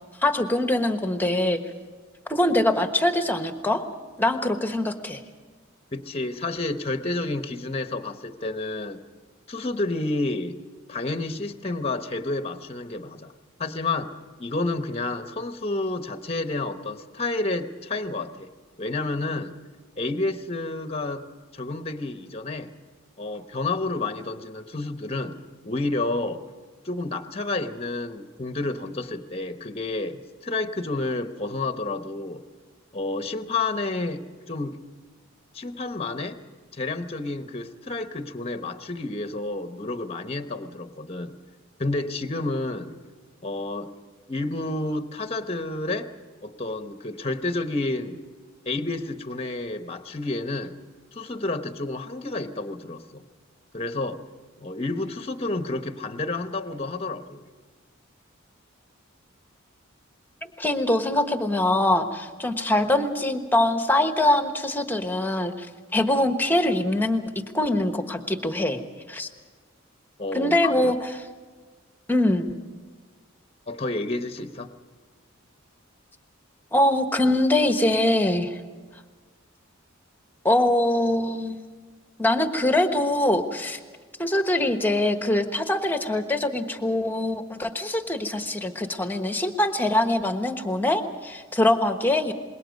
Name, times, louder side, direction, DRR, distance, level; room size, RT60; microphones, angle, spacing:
voice 1, 0.2-1.6 2.3-3.8 4.2-5.2 60.6-65.7 65.9-67.2 67.5-68.8 69.1-69.3 70.3-71.3 72.1-72.5 76.7-78.6 80.4-81.6 82.2-83.8 84.2-92.3, left 1 dB, 10° left, 6 dB, 1.2 m, -23 dB
voice 2, 5.9-9.0 9.5-10.6 10.9-13.3 13.6-14.1 14.4-18.5 18.8-19.5 20.0-21.2 21.5-22.7 23.2-25.4 25.6-26.4 26.8-32.4 32.9-34.8 35.5-36.4 36.7-41.3 41.8-42.9 43.4-43.9 44.3-46.1 46.4-48.2 48.7-50.7 51.1-53.2 53.7-54.2 54.6-57.4 70.2-70.9 73.7-74.7, left 2 dB, 30° left, 8 dB, 1.0 m, -30 dB
26.5 x 21.5 x 5.3 m, 1.4 s
head